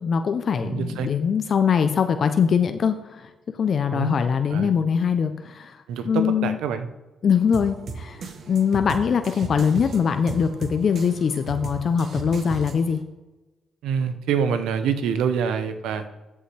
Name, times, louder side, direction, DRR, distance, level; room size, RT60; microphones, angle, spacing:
voice 1, 0.0-3.2 3.6-5.8 6.0-6.6 7.2-8.2 8.5-13.0, left 6 dB, 50° left, 9 dB, 0.6 m, -22 dB
voice 2, 0.6-1.1 3.9-4.2 4.5-4.7 5.9-6.9 13.8-16.1, right 7 dB, 85° right, 9 dB, 0.8 m, -26 dB
sound 1, 7.5-13.0, right 4 dB, 55° right, 1.1 m, -36 dB
13.5 x 5.6 x 3.3 m, 1.1 s
cardioid pair, 90°, 0 cm